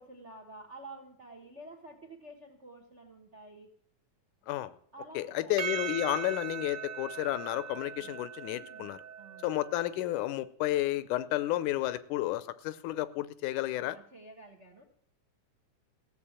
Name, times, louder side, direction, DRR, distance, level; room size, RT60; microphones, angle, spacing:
voice 1, 0.0-3.7 4.9-5.8 7.9-8.2 8.5-8.9 9.2-9.5 13.7-14.8, right 2 dB, 45° right, 4 dB, 0.9 m, -50 dB
voice 2, 5.2-9.0 9.4-14.0, left 15 dB, 85° left, 15 dB, 2.2 m, -32 dB
Percussion, 5.6-10.2, right 8 dB, 85° right, 2.5 m, -40 dB
15.5 x 7.6 x 8.7 m, 0.64 s
omnidirectional pair, 3.5 m